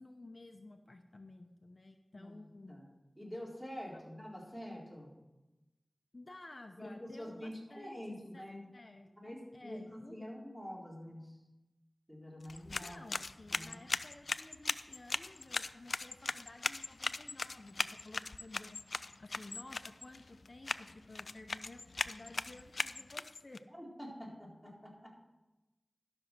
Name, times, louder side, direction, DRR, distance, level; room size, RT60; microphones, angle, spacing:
voice 1, 0.0-2.7 3.9-4.0 6.1-8.0 8.3-8.4 8.7-10.2 12.8-18.8 19.2-23.6, left 2 dB, 55° left, 5 dB, 0.8 m, -53 dB
voice 2, 2.1-2.9 3.2-5.1 6.8-8.7 9.2-11.4 12.1-13.0 13.5-13.8 23.8-25.2, equal, 5° right, -4 dB, 3.9 m, -46 dB
sound 1, 12.4-23.6, left 3 dB, 80° left, 0.3 m, -40 dB
12.5 x 6.3 x 6.1 m, 1.0 s
wide cardioid pair, 40°, 0 cm